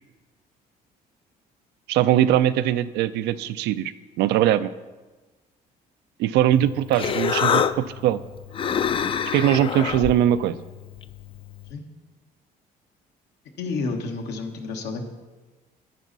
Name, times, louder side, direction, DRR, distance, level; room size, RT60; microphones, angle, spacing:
voice 1, 1.9-3.9 4.2-4.7 6.2-8.2 9.3-10.6, right 11 dB, 85° right, 14 dB, 0.4 m, -21 dB
Human voice, 6.5-11.7, left 7 dB, 30° left, 0.4 m, -27 dB
voice 2, 13.6-15.1, left 3 dB, 80° left, 3 dB, 1.3 m, -30 dB
10.5 x 9.1 x 4.0 m, 1.2 s
cardioid pair, 110°, 17 cm